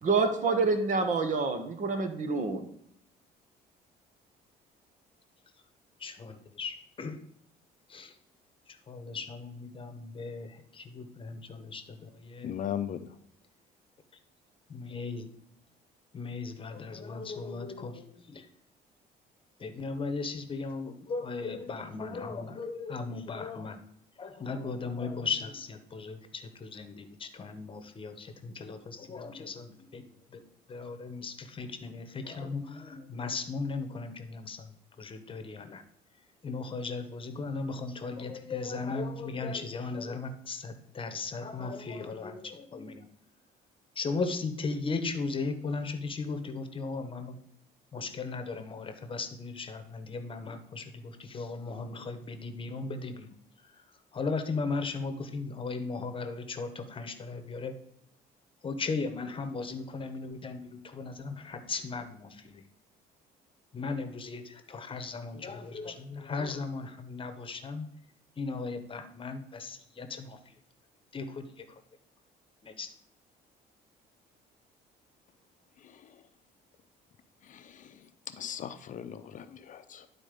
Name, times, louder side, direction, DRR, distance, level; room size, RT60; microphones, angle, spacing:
voice 1, 0.0-2.6, right 4 dB, 50° right, 7 dB, 1.4 m, -27 dB
voice 2, 6.0-7.2 7.9-8.2 8.7-12.6 14.7-15.3 16.1-18.5 19.6-23.8 24.2-30.4 30.7-34.7 35.0-35.8 36.4-43.1 43.9-47.4 47.9-53.3 53.6-53.8 54.1-57.7 58.6-62.6 63.7-67.9 68.4-70.6 71.1-71.8 72.6-72.9, left 4 dB, 30° left, 9 dB, 1.1 m, -37 dB
voice 3, 12.4-13.1 77.5-77.9 78.4-80.1, left 9 dB, 50° left, 10 dB, 0.6 m, -37 dB
11.0 x 4.2 x 5.2 m, 0.72 s
cardioid pair, 110°, 17 cm